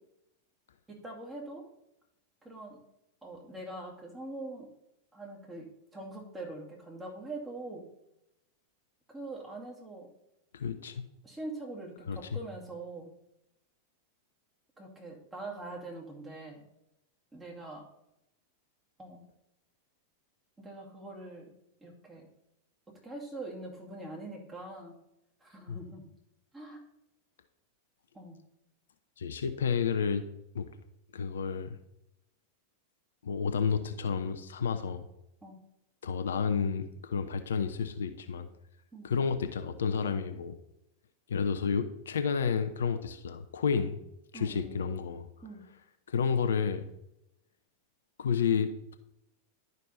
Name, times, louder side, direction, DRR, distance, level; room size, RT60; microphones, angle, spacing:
voice 1, 0.9-1.6 2.4-2.8 3.2-4.7 5.1-5.7 5.9-7.8 9.1-10.1 11.2-13.1 14.8-16.6 17.3-17.8 19.0-19.2 20.6-21.5 21.8-22.3 23.0-25.0 25.4-26.0 26.5-26.8 28.1-28.4 35.4-35.6 38.9-39.1 44.3-44.9 45.4-45.6, right 2 dB, 15° right, -1 dB, 2.3 m, -43 dB
voice 2, 10.5-11.0 12.1-12.2 25.7-25.8 29.2-30.2 30.5-30.7 31.1-31.8 33.2-35.0 36.0-38.5 39.0-40.6 41.3-44.0 44.3-45.3 46.1-46.9 48.2-49.0, left 6 dB, 65° left, 9 dB, 0.6 m, -30 dB
11.0 x 5.3 x 4.2 m, 0.85 s
figure-of-eight pair, 90°, 0 cm